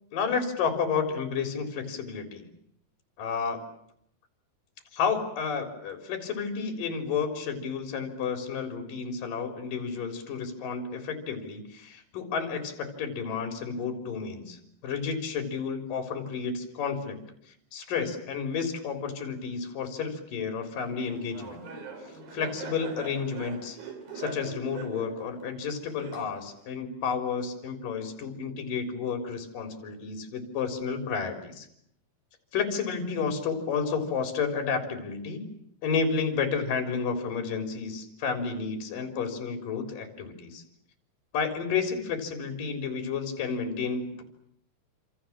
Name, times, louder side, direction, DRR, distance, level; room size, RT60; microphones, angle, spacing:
voice 1, 0.1-2.4 3.2-3.6 4.9-17.2 17.7-21.6 22.3-23.8 24.1-31.7 32.5-35.5 35.8-40.6 41.3-44.2, left 5 dB, 55° left, 4 dB, 5.2 m, -31 dB
Laughter, 20.8-26.6, right 5 dB, 60° right, 5.7 m, -42 dB
29.0 x 27.0 x 7.4 m, 0.73 s
omnidirectional pair, 4.8 m